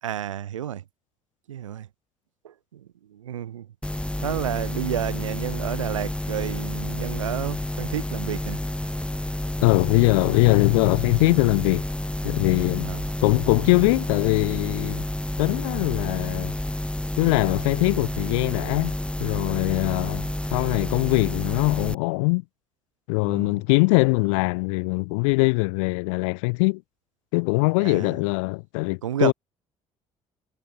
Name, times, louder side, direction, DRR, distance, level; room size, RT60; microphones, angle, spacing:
voice 1, 0.0-0.8 1.5-1.9 2.4-3.7 4.2-8.6 12.8-13.0 23.2-23.6 27.8-28.2 29.0-29.3, right 11 dB, 85° right, 3.2 m, -31 dB
sound 1, 3.8-21.9, left 1 dB, 5° left, 5.0 m, -30 dB
voice 2, 9.6-11.8 12.2-12.9 13.2-15.0 15.4-16.5 17.2-18.9 19.2-22.4 23.1-26.8 27.3-29.3, left 30 dB, 75° left, 4.4 m, -22 dB
hypercardioid pair, 50°, 16 cm